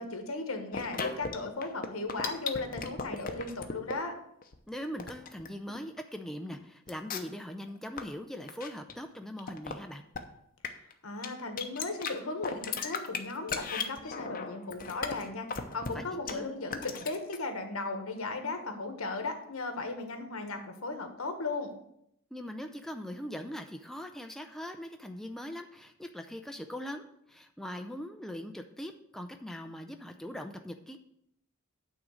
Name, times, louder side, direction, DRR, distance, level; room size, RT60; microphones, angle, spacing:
voice 1, 0.0-4.1 11.0-21.7, left 3 dB, 85° left, 6 dB, 1.3 m, -36 dB
sound 1, 0.7-1.4 1.6-4.0 4.4-6.0 6.5-6.6 6.9-7.4 7.7-8.0 8.4-9.0 9.4-9.7 10.2-10.3 10.6-10.9 11.2-11.3 11.6-12.1 12.4-15.9 16.3-16.4 16.7-17.4, left 5 dB, 40° left, 0.7 m, -36 dB
voice 2, 4.7-10.0 15.9-16.6 22.3-31.0, equal, ahead, 5 dB, 0.4 m, -41 dB
9.1 x 3.8 x 6.3 m, 0.75 s
head